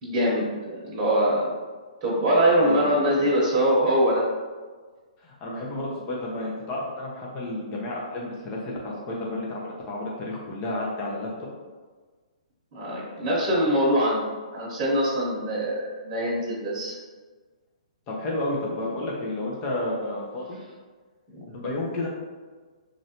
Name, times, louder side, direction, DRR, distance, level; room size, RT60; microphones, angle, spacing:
voice 1, 0.0-1.5 2.0-4.2 12.7-14.2 14.5-16.9 21.3-21.4, equal, 30° right, -6 dB, 1.0 m, -23 dB
voice 2, 2.6-3.3 5.2-11.3 18.1-20.6 21.5-22.1, left 1 dB, 30° left, -3 dB, 0.7 m, -31 dB
3.1 x 2.5 x 2.8 m, 1.4 s
hypercardioid pair, 140°, 4 cm